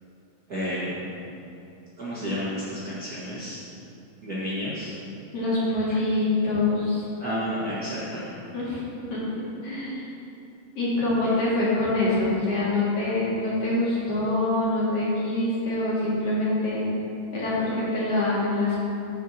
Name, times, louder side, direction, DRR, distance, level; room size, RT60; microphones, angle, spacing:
voice 1, 0.5-1.3 2.0-3.6 4.2-4.9 7.2-8.3, equal, 40° right, -10 dB, 1.4 m, -31 dB
voice 2, 5.3-7.0 8.5-8.8 9.1-9.2 9.6-10.1 10.8-16.9 17.3-18.8, left 2 dB, 45° left, -9 dB, 2.8 m, -25 dB
13.5 x 6.0 x 4.3 m, 2.8 s
omnidirectional pair, 4.2 m